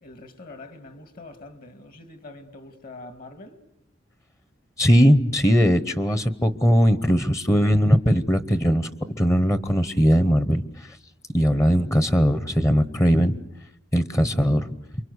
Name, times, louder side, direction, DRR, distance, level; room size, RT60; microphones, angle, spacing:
voice 1, 0.0-3.6, left 2 dB, 50° left, 2.3 m, -44 dB
voice 2, 4.8-11.0 11.3-13.3 13.9-14.7, equal, 15° left, 0.9 m, -20 dB
28.0 x 24.0 x 8.1 m
head